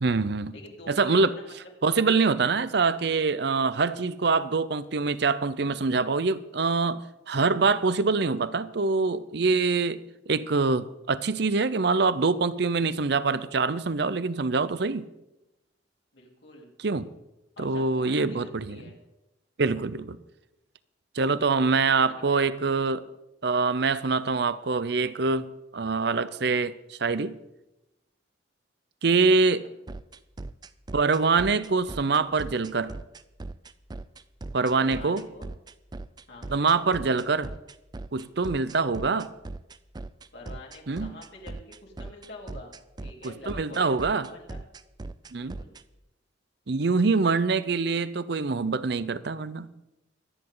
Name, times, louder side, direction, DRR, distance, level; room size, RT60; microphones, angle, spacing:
voice 1, 0.0-0.5 0.9-1.4 1.8-10.0 10.3-15.1 16.8-17.1 17.6-18.8 19.6-20.2 21.1-23.0 23.4-27.3 29.0-29.7 30.9-32.9 34.5-35.3 36.5-37.5 38.1-39.3 40.9-41.1 43.2-44.3 45.3-45.6 46.7-49.7, right 4 dB, 60° right, 15 dB, 0.7 m, -25 dB
voice 2, 0.5-2.0 16.1-16.7 17.6-19.0 21.5-22.6 34.8-35.5 36.3-36.5 40.3-42.7 43.0-44.6 45.4-45.7, left 2 dB, 70° left, -1 dB, 3.7 m, -46 dB
sound 1, 29.9-45.8, right 2 dB, 20° right, 0.4 m, -39 dB
24.5 x 9.9 x 3.9 m, 0.94 s
head